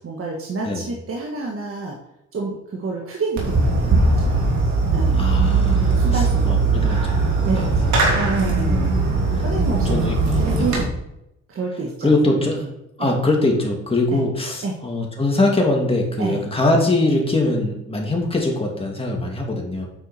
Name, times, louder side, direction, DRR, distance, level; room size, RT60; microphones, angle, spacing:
voice 1, 0.0-2.0 2.3-4.4 4.9-5.3 5.9-6.6 7.4-9.0 9.4-10.0 10.3-10.9 11.5-12.7 13.0-13.1 14.1-14.2 14.6-14.7 16.2-16.4, right 3 dB, 45° right, 0 dB, 1.5 m, -29 dB
Fireworks, 3.4-10.8, right 3 dB, 70° right, 3.1 m, -19 dB
voice 2, 5.1-7.8 8.6-8.7 9.3-9.4 9.8-10.8 12.0-12.7 13.0-19.8, left 2 dB, 20° left, 0 dB, 2.5 m, -22 dB
9.3 x 5.7 x 4.4 m, 0.83 s
cardioid pair, 90°, 30 cm